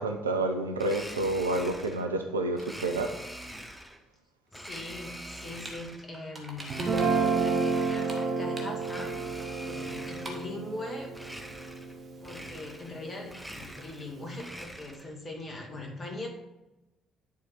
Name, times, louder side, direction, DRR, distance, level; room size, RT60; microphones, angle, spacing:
voice 1, 0.0-3.1, right 2 dB, 80° right, 5 dB, 0.6 m, -29 dB
Domestic sounds home sounds, 0.7-2.1 2.6-4.0 4.5-6.1 6.5-8.3 8.7-10.5 11.1-12.0 12.2-13.0 13.2-15.1, equal, ahead, 1.1 m, -44 dB
voice 2, 4.6-9.2 9.6-11.1 12.2-16.3, left 2 dB, 35° left, 1 dB, 2.2 m, -41 dB
sound 1, 5.3-5.8 6.1-7.3 7.6-9.1 9.4-9.5 9.7-9.8 10.0-10.5, right 1 dB, 25° right, 1.9 m, -44 dB
Guitar, 6.7-13.0, right 4 dB, 50° right, 1.4 m, -31 dB
10.5 x 4.2 x 4.6 m, 0.98 s
figure-of-eight pair, 45°, 0 cm